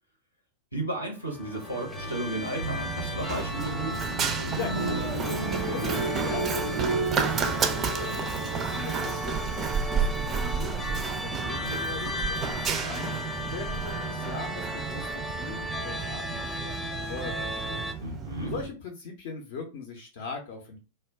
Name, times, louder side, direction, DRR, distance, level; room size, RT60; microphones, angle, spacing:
voice 1, 0.7-4.0 18.0-18.5, right 1 dB, 85° left, 3 dB, 0.8 m, -33 dB
sound 1, 1.2-17.9, equal, 15° left, 0.6 m, -35 dB
sound 2, 1.7-10.0, right 2 dB, 90° right, 0.5 m, -34 dB
Run, 2.6-18.7, right 6 dB, 25° right, 0.4 m, -32 dB
voice 2, 4.5-5.1 5.7-18.2 18.4-20.8, left 4 dB, 50° left, 2 dB, 0.5 m, -40 dB
2.2 x 2.1 x 3.3 m, 0.31 s
figure-of-eight pair, 90°, 0 cm